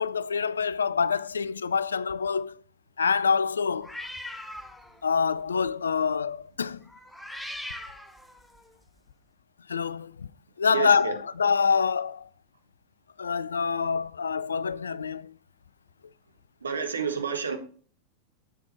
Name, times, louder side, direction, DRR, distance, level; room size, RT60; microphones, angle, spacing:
voice 1, 0.0-2.6 3.0-4.0 5.0-6.9 9.7-10.3 10.6-12.3 13.2-15.3, left 6 dB, 70° left, 0.3 m, -26 dB
sound 1, 3.8-5.0 5.4-5.7 6.9-8.7, left 1 dB, 5° left, 0.7 m, -40 dB
voice 2, 10.7-11.1 16.6-17.6, right 6 dB, 75° right, 1.4 m, -29 dB
7.5 x 7.0 x 3.1 m
figure-of-eight pair, 90°, 0 cm